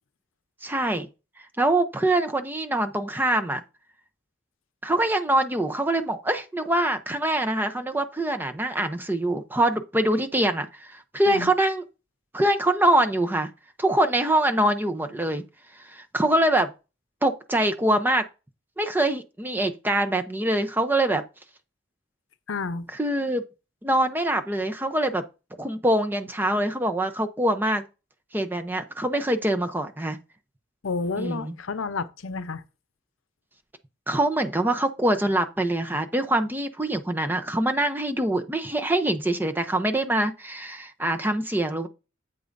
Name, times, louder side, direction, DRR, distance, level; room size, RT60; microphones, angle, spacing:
voice 1, 0.6-1.1 1.6-3.6 4.8-11.8 12.3-13.5 13.8-15.4 15.8-16.7 17.2-18.2 18.8-21.2 23.0-23.4 23.8-25.2 25.6-27.8 28.3-30.2 31.2-31.5 34.1-41.9, right 1 dB, 10° right, 0.6 m, -24 dB
voice 2, 22.5-22.9 30.8-32.6, left 4 dB, 85° left, 0.7 m, -30 dB
8.4 x 8.1 x 2.6 m
head